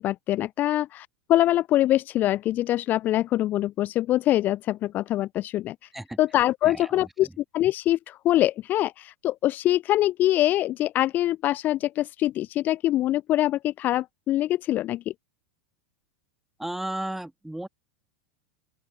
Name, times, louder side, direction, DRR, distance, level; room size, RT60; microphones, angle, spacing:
voice 1, 0.0-5.8 6.2-7.3 7.5-15.1, left 14 dB, 35° left, 0.4 m, -24 dB
voice 2, 6.6-7.1 16.6-17.7, right 1 dB, 5° right, 2.0 m, -34 dB
open air
figure-of-eight pair, 85°, 6 cm